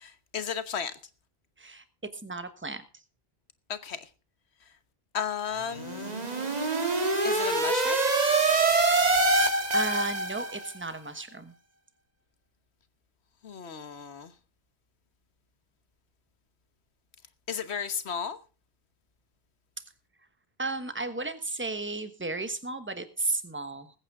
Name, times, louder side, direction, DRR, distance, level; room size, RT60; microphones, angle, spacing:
voice 1, 0.0-0.9 3.7-4.0 5.1-6.1 7.2-8.0 13.4-14.3 17.5-18.4, left 7 dB, 90° left, 12 dB, 1.4 m, -34 dB
voice 2, 2.2-2.8 8.8-9.0 9.7-11.5 20.6-23.9, right 3 dB, 10° right, 10 dB, 1.2 m, -34 dB
sound 1, 5.7-10.7, right 2 dB, 40° right, 1.7 m, -25 dB
20.5 x 8.9 x 3.6 m, 0.33 s
omnidirectional pair, 1.1 m